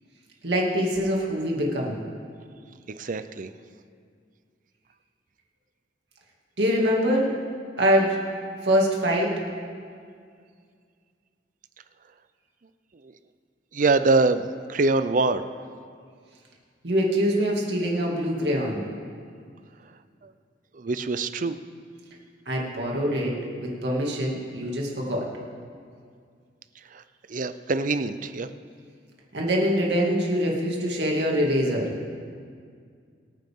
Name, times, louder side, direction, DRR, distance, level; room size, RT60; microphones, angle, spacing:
voice 1, 0.4-2.0 6.6-7.3 7.8-8.2 8.6-9.3 16.8-18.8 22.5-25.3 29.3-31.9, equal, 75° right, -2 dB, 2.3 m, -24 dB
voice 2, 3.0-3.5 13.7-15.4 20.7-21.6 27.3-28.5, right 3 dB, 50° right, 11 dB, 0.6 m, -24 dB
23.5 x 9.2 x 3.7 m, 2.2 s
head